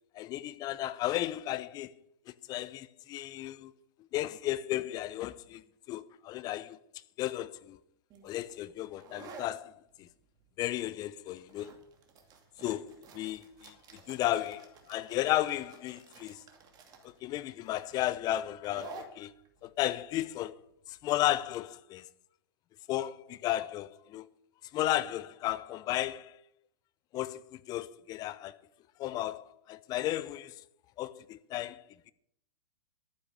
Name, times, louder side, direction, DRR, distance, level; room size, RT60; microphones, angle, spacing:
voice 1, 0.1-1.9 2.5-3.7 4.1-6.8 7.2-7.8 8.2-9.7 10.0-10.1 10.6-11.7 12.6-16.4 17.0-19.3 19.6-20.5 20.9-22.0 22.9-24.3 24.7-26.4 27.1-28.5 29.0-30.5 31.0-31.8, left 14 dB, 30° left, 0.7 m, -34 dB
sound 1, 8.1-21.5, right 4 dB, 30° right, 2.5 m, -53 dB
12.0 x 10.0 x 6.4 m
hypercardioid pair, 115°, 13 cm